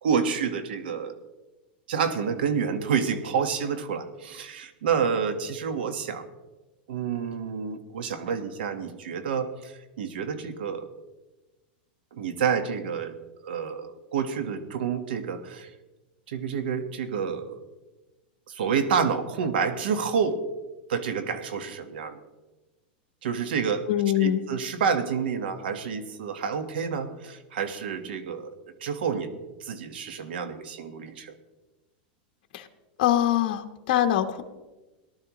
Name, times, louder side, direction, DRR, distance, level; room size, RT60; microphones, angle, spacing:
voice 1, 0.0-1.1 1.9-6.2 6.9-10.8 12.1-13.1 13.4-15.7 16.3-17.6 18.5-20.4 20.9-22.2 23.2-23.9 24.2-28.5 28.8-29.3 29.6-31.3, right 6 dB, 85° right, 9 dB, 1.4 m, -28 dB
voice 2, 23.9-24.4 32.5-32.7 33.0-34.4, left 12 dB, 60° left, 5 dB, 1.2 m, -23 dB
18.5 x 12.0 x 3.1 m, 1.1 s
supercardioid pair, 160°, 5 cm